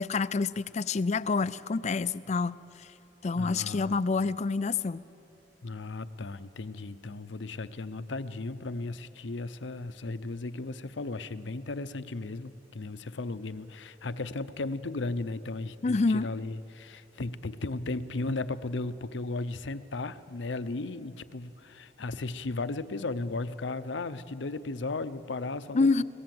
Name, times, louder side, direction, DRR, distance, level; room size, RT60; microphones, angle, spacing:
voice 1, 0.0-2.9 3.2-5.0 15.8-16.3 25.7-26.0, left 4 dB, 40° left, 17 dB, 0.4 m, -27 dB
voice 2, 3.4-4.0 5.6-26.0, left 3 dB, 80° left, 14 dB, 0.7 m, -35 dB
25.0 x 18.0 x 7.8 m, 3.0 s
head